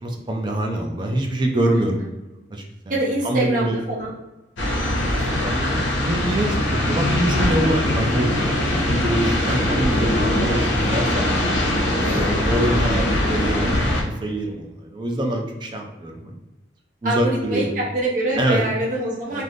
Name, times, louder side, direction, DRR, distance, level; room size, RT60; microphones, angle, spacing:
voice 1, 0.0-2.0 2.5-3.0 3.2-3.8 5.2-11.3 12.1-16.3 17.0-17.8 18.4-18.6 19.3-19.4, right 1 dB, 25° right, 2 dB, 0.3 m, -25 dB
voice 2, 1.8-2.1 2.9-4.1 9.2-9.4 12.0-12.5 17.0-19.4, right 1 dB, 45° right, -5 dB, 0.7 m, -25 dB
sound 1, 4.6-14.0, left 1 dB, 75° left, 0.7 m, -21 dB
2.6 x 2.5 x 3.4 m, 1.1 s
head